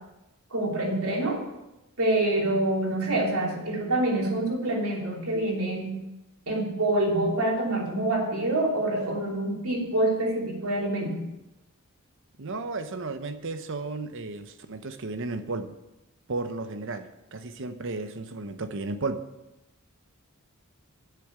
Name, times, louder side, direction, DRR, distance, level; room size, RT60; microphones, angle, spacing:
voice 1, 0.5-1.4 2.0-5.9 6.5-11.2, right 1 dB, 75° right, -2 dB, 3.2 m, -26 dB
voice 2, 12.4-15.7 16.3-19.3, right 3 dB, 55° right, 9 dB, 0.8 m, -34 dB
8.5 x 6.8 x 8.2 m, 0.97 s
head